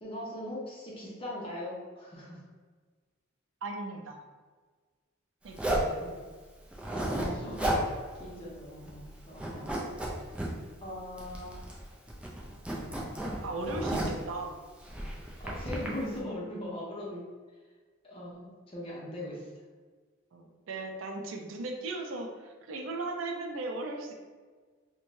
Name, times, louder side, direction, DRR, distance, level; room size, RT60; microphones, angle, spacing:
voice 1, 0.0-2.4 6.0-6.3 7.1-7.8 8.2-9.7 10.8-11.6 13.3-14.1 15.4-17.2 18.0-19.5, left 1 dB, 30° left, -5 dB, 0.6 m, -40 dB
voice 2, 3.6-4.2 5.4-6.1 13.4-14.5 20.3-24.1, right 2 dB, 70° right, 2 dB, 0.4 m, -37 dB
Zipper (clothing), 5.6-5.9 6.7-7.9 8.2-8.3 8.7-9.1 9.4-10.5 11.2-11.8 12.1-14.2 14.8-15.9, right 1 dB, 5° right, 0.3 m, -33 dB
2.6 x 2.1 x 3.0 m, 1.5 s
head